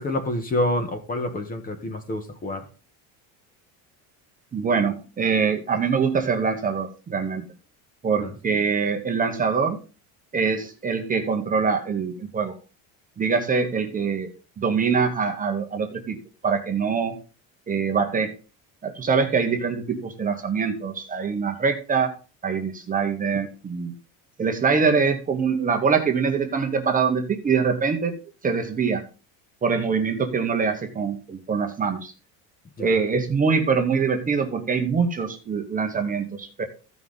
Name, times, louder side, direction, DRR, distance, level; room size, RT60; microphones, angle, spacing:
voice 1, 0.0-2.6 8.2-8.3 32.8-33.0, left 1 dB, 20° left, 1.4 m, -27 dB
voice 2, 4.5-7.5 8.0-9.8 10.3-12.5 13.2-16.2 16.4-17.2 17.7-18.3 18.8-22.1 22.4-23.9 24.4-28.1 28.4-29.0 29.6-32.1 32.8-36.6, right 5 dB, 20° right, 1.1 m, -24 dB
14.5 x 5.6 x 4.0 m
cardioid pair, 155°, 40 cm